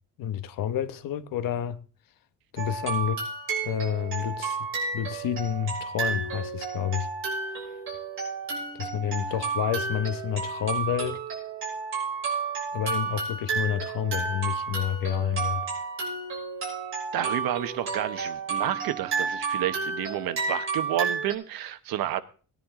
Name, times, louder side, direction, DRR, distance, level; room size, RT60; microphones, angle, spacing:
voice 1, 0.2-1.8 2.5-3.2 3.6-4.7 4.9-7.1 8.7-11.2 12.7-15.6, left 10 dB, 65° left, 1.2 m, -29 dB
sound 1, 2.6-21.3, right 5 dB, 35° right, 6.3 m, -31 dB
voice 2, 17.1-22.2, right 11 dB, 70° right, 1.2 m, -30 dB
19.0 x 10.5 x 3.8 m
cardioid pair, 175°, 36 cm